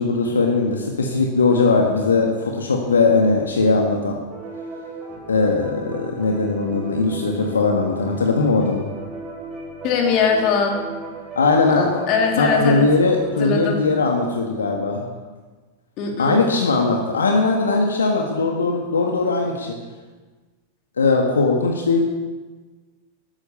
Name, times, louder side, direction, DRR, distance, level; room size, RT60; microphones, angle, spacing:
voice 1, 0.0-4.2 5.3-8.9 11.3-12.0 12.4-15.1 16.2-19.8 21.0-22.0, left 3 dB, 70° left, 2 dB, 1.7 m, -19 dB
sound 1, 4.3-13.5, right 3 dB, 30° right, 5.6 m, -36 dB
voice 2, 9.8-10.8 11.7-12.8 13.4-13.8 16.0-16.4, left 5 dB, 40° left, 1 dB, 3.2 m, -21 dB
13.5 x 12.0 x 6.9 m, 1.3 s
figure-of-eight pair, 90°, 0 cm